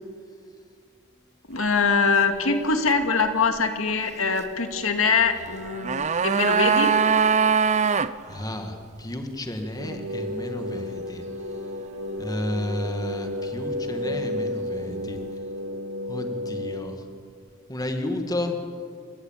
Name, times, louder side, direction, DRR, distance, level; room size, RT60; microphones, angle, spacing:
voice 1, 1.5-6.9, left 4 dB, 80° left, 6 dB, 2.1 m, -23 dB
sound 1, 5.5-8.1 8.4-8.5, right 6 dB, 35° right, 0.6 m, -21 dB
voice 2, 8.3-11.2 12.2-15.2 16.1-16.9 17.7-18.6, left 1 dB, 20° left, 5 dB, 2.0 m, -32 dB
sound 2, 9.8-16.8, left 1 dB, 80° right, 2.7 m, -32 dB
29.0 x 14.5 x 9.1 m, 2.1 s
head